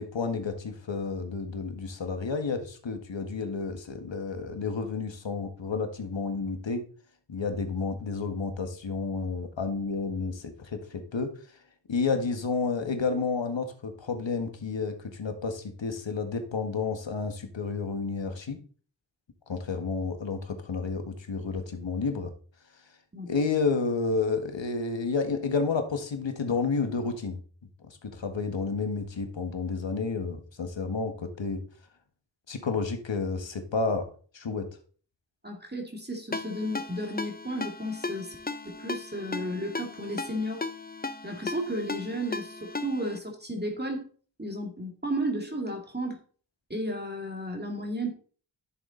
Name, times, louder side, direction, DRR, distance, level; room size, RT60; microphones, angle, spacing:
voice 1, 0.0-6.8 7.3-11.4 11.9-18.6 19.5-22.3 23.3-27.4 27.8-31.6 32.5-34.1 34.3-34.7, left 4 dB, 75° left, 6 dB, 1.7 m, -30 dB
voice 2, 35.4-38.4 38.6-40.7 41.2-44.1 44.4-46.2 46.7-48.1, equal, 20° right, 1 dB, 2.2 m, -33 dB
Ringtone, 36.3-43.2, left 3 dB, 20° left, 0.7 m, -36 dB
10.5 x 7.0 x 3.9 m, 0.42 s
wide cardioid pair, 55°, 45 cm